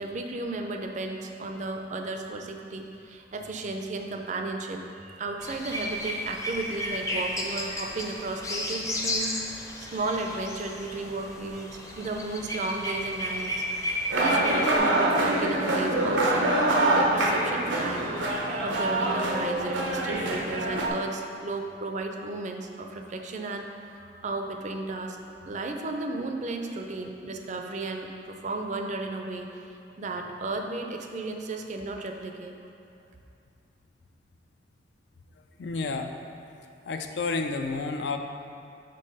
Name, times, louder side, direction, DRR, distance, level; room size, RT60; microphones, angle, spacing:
voice 1, 0.0-11.7 12.0-13.5 14.1-18.1 18.4-25.2 25.5-29.6 30.0-32.5, right 2 dB, 40° right, 3 dB, 0.4 m, -34 dB
sound 1, 5.4-14.8, left 1 dB, 15° left, 0.6 m, -33 dB
sound 2, 14.1-20.9, right 1 dB, 90° right, 0.7 m, -25 dB
voice 2, 35.6-36.1 36.9-38.2, left 4 dB, 65° left, 6 dB, 0.4 m, -30 dB
5.3 x 4.1 x 5.3 m, 2.5 s
head